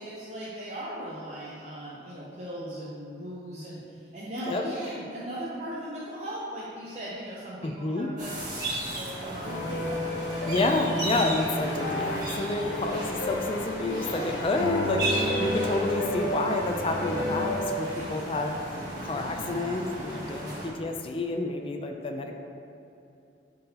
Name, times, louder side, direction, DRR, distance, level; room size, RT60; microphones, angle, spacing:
voice 1, 0.0-8.3 8.9-10.4 17.9-19.8, right 1 dB, 40° right, -7 dB, 0.7 m, -39 dB
voice 2, 7.6-8.1 10.4-22.3, left 2 dB, 30° left, 3 dB, 0.3 m, -29 dB
sound 1, 8.2-20.7, right 1 dB, 20° right, 1.3 m, -35 dB
sound 2, 9.4-17.6, left 1 dB, 70° left, 0.8 m, -32 dB
9.1 x 3.8 x 2.8 m, 2.8 s
head